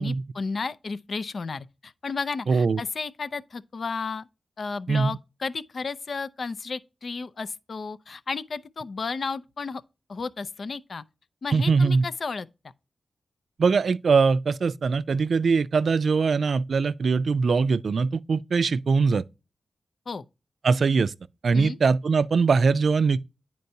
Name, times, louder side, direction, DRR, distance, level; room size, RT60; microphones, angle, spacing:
voice 1, 0.0-4.3 4.6-9.8 10.1-11.0 11.4-12.5 20.1-20.2 21.5-21.8, left 4 dB, 65° left, 0.5 m, -33 dB
voice 2, 2.5-2.8 4.9-5.1 11.5-12.0 13.6-19.2 20.6-21.1 21.4-23.2, right 4 dB, 70° right, 0.3 m, -22 dB
9.4 x 4.4 x 2.7 m
cardioid pair, 55°, 0 cm